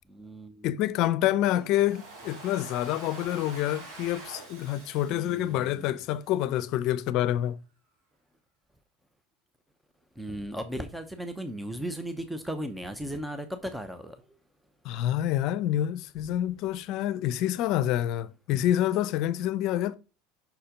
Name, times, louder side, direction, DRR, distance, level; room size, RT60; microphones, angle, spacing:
voice 1, 0.1-0.7 5.1-6.0 10.2-14.2, right 1 dB, 5° right, 0.7 m, -36 dB
voice 2, 0.6-7.6 14.8-19.9, left 12 dB, 60° left, 0.6 m, -27 dB
Domestic sounds home sounds, 1.5-6.5, right 2 dB, 65° right, 3.6 m, -46 dB
5.9 x 4.3 x 5.1 m
supercardioid pair, 95°, 0 cm